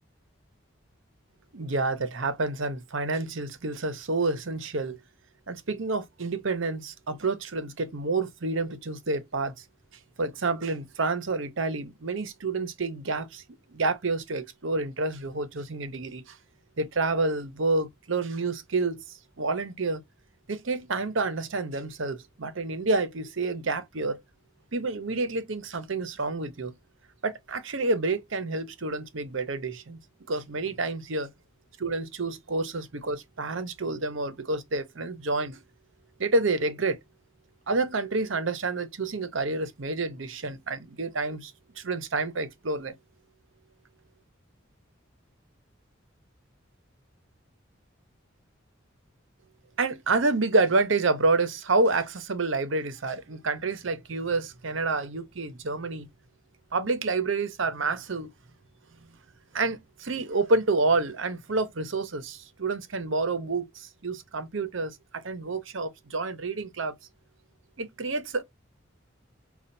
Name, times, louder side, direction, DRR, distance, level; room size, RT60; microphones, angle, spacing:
voice 1, 1.5-5.0 5.5-9.6 10.2-13.4 13.7-16.4 16.8-19.0 19.4-20.0 20.5-24.2 24.7-26.7 27.2-30.0 30.3-31.3 31.8-35.6 36.2-37.0 37.7-43.0 49.8-56.1 56.7-58.3 59.5-66.9 67.8-68.4, right 3 dB, 65° right, 0.8 m, -28 dB
5.5 x 2.4 x 2.6 m
head